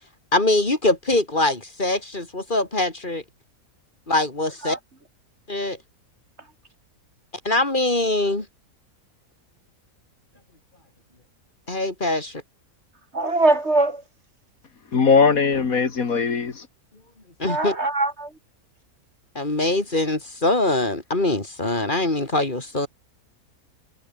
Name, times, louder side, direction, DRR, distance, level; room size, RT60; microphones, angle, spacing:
voice 1, 0.3-3.2 4.1-4.8 5.5-5.8 7.4-8.4 11.7-12.4 17.4-17.7 19.3-22.9, left 2 dB, 35° left, 3.1 m, -23 dB
voice 2, 13.1-14.0 17.5-18.4, right 2 dB, 45° right, 3.8 m, -22 dB
voice 3, 14.9-16.7, left 5 dB, 70° left, 2.3 m, -19 dB
omnidirectional pair, 1.6 m